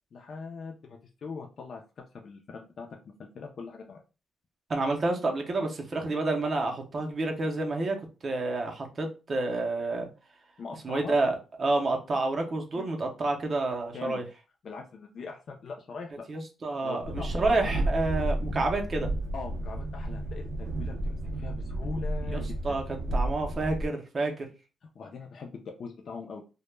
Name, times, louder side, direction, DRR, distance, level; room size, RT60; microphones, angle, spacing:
voice 1, 0.1-2.9 3.3-4.0 10.6-11.2 12.7-12.9 13.9-14.2 14.6-16.3 16.8-17.8 19.3-22.8 24.9-26.4, left 4 dB, 45° left, 1 dB, 0.4 m, -41 dB
voice 2, 4.7-8.0 8.2-10.1 10.8-14.2 16.3-19.1 22.3-22.8 23.1-24.5, right 2 dB, 30° right, 3 dB, 0.5 m, -29 dB
Train, 17.0-23.9, right 1 dB, 85° right, 0.4 m, -32 dB
2.1 x 2.0 x 3.1 m, 0.31 s
wide cardioid pair, 165°, 0 cm